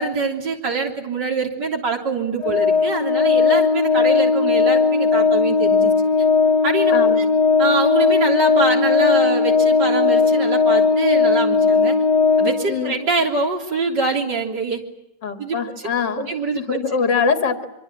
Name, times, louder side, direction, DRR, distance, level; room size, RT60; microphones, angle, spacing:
voice 1, 0.0-5.9 6.6-7.3 7.6-12.0 12.4-14.8 15.4-15.6 16.2-16.8, right 3 dB, 70° right, 1 dB, 4.1 m, -24 dB
Organ, 2.4-13.1, left 5 dB, 25° left, 1.5 m, -17 dB
voice 2, 6.9-7.2 12.7-13.0 15.2-16.3 16.5-17.6, left 5 dB, 80° left, 7 dB, 2.6 m, -23 dB
24.5 x 24.5 x 8.6 m, 0.88 s
omnidirectional pair, 1.9 m